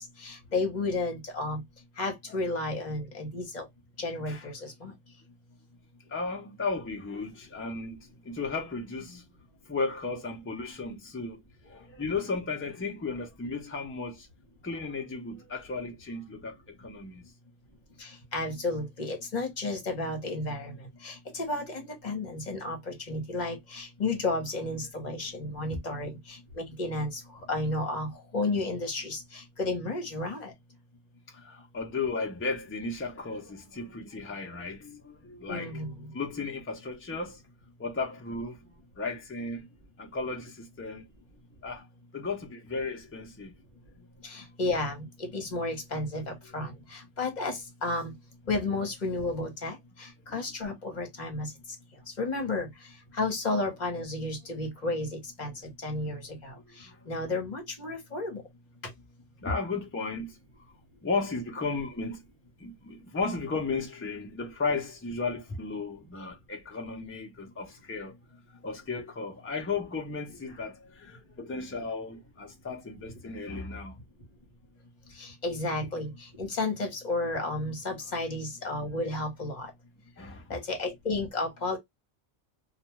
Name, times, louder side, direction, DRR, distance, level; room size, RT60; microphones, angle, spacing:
voice 1, 0.0-1.6 2.0-3.7 4.0-4.9 18.0-27.2 27.5-30.5 35.5-36.1 44.2-48.1 48.5-51.5 52.2-52.7 53.1-58.4 75.2-79.7 80.5-81.8, left 2 dB, 40° left, 1.0 m, -32 dB
voice 2, 6.1-9.2 9.7-14.3 14.6-17.2 25.6-25.7 31.3-37.4 37.8-39.7 40.0-41.0 41.6-41.9 42.1-43.5 44.0-44.1 55.6-55.7 56.6-57.1 59.4-60.4 61.0-62.2 62.6-68.1 68.5-74.0 78.8-78.9 80.2-80.6, left 4 dB, 20° left, 0.3 m, -35 dB
2.4 x 2.2 x 3.0 m
omnidirectional pair, 1.2 m